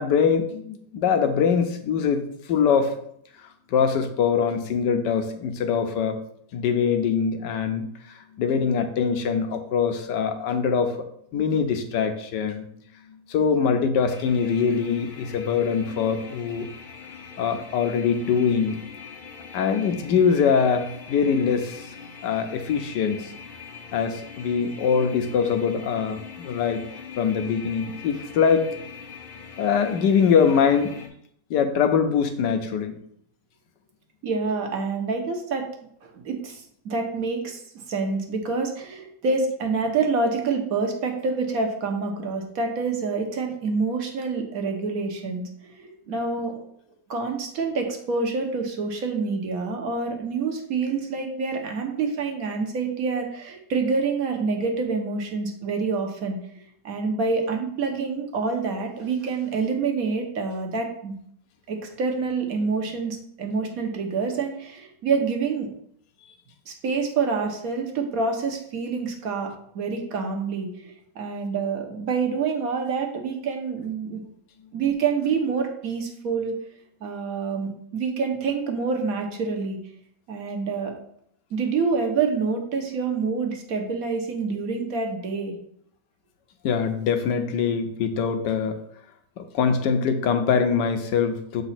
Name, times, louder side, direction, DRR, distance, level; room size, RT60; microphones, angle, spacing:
voice 1, 0.0-2.2 2.5-2.9 3.7-6.2 6.5-7.9 8.4-11.0 11.3-12.6 13.1-16.7 17.4-18.8 19.5-21.9 22.2-23.3 23.9-26.9 27.2-28.7 29.6-30.9 31.5-32.9 86.6-88.8 89.4-91.6, left 6 dB, 75° left, 7 dB, 1.3 m, -23 dB
sound 1, 14.1-31.1, left 6 dB, 60° left, 0.5 m, -42 dB
voice 2, 34.2-35.6 36.0-45.4 45.7-46.6 47.1-56.4 56.8-61.1 61.7-65.7 66.7-74.2 74.7-76.6 77.0-79.8 80.3-80.9 81.5-85.5, right 4 dB, 60° right, 3 dB, 1.3 m, -27 dB
6.9 x 4.0 x 4.2 m, 0.69 s
omnidirectional pair, 1.9 m